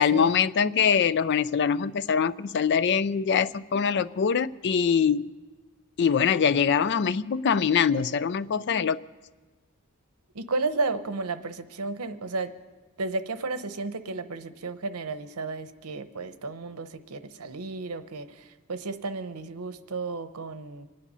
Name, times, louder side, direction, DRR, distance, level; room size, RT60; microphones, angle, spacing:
voice 1, 0.0-5.3 6.0-9.0, left 7 dB, 50° left, 16 dB, 0.4 m, -23 dB
voice 2, 10.3-12.5 13.0-20.9, right 3 dB, 90° right, 11 dB, 0.8 m, -33 dB
25.5 x 10.0 x 5.5 m, 1.3 s
head